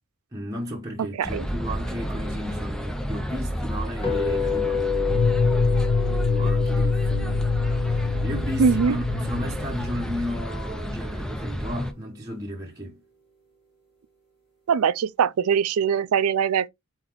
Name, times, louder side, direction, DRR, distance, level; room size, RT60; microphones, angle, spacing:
voice 1, 0.3-5.5 6.2-13.0, equal, 15° right, 0.9 m, -34 dB
sound 1, 1.2-11.9, equal, 5° left, 0.4 m, -30 dB
sound 2, 4.0-10.1, left 6 dB, 25° left, 1.3 m, -30 dB
sound 3, 5.1-10.2, left 4 dB, 70° left, 0.9 m, -25 dB
voice 2, 8.6-9.0 14.7-16.7, right 7 dB, 80° right, 0.4 m, -22 dB
4.3 x 3.9 x 3.0 m
head